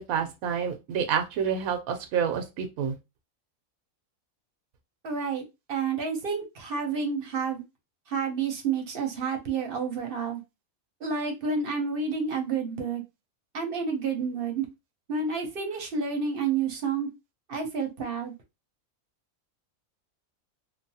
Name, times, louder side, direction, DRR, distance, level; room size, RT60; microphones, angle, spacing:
voice 1, 0.1-2.9, right 7 dB, 90° right, 1.0 m, -28 dB
voice 2, 5.0-5.4 5.7-7.6 8.1-10.4 11.0-13.0 13.5-14.7 15.1-17.1 17.5-18.3, right 5 dB, 50° right, 0.8 m, -29 dB
3.1 x 2.2 x 2.7 m
omnidirectional pair, 1.4 m